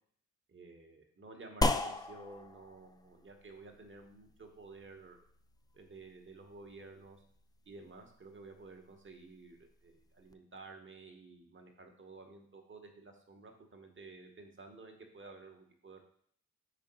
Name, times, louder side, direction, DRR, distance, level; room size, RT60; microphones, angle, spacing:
voice 1, 0.5-5.2 5.7-7.2 7.7-16.0, right 3 dB, 35° right, 4 dB, 1.2 m, -53 dB
sound 1, 1.6-10.3, left 2 dB, 10° left, 0.3 m, -40 dB
5.2 x 3.6 x 5.3 m, 0.62 s
cardioid pair, 75°, 34 cm